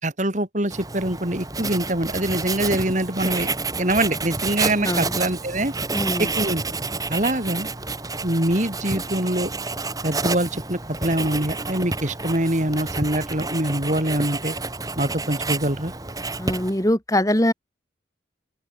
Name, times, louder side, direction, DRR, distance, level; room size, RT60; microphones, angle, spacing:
voice 1, 0.0-3.5 3.8-5.7 6.2-6.6 7.1-7.7 8.2-9.5 10.0-14.5 15.0-15.9, right 1 dB, 40° right, 3.4 m, -24 dB
Writing, 0.7-16.9, right 3 dB, 20° right, 1.8 m, -29 dB
voice 2, 4.8-5.1 5.9-6.3 16.4-17.5, left 1 dB, 15° left, 2.1 m, -22 dB
open air
head